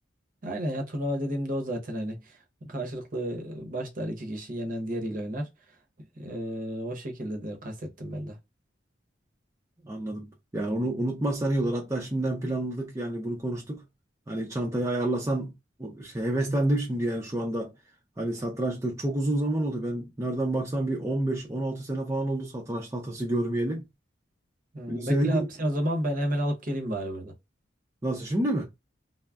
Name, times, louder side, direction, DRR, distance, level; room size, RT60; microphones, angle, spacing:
voice 1, 0.4-2.4 2.7-5.5 6.2-8.4 24.7-27.3, equal, 45° right, 0.7 m, -31 dB
voice 2, 9.8-13.8 14.3-15.5 15.8-17.7 18.2-23.8 24.9-25.5 28.0-28.7, right 1 dB, 15° right, 0.4 m, -28 dB
2.2 x 2.0 x 3.4 m
head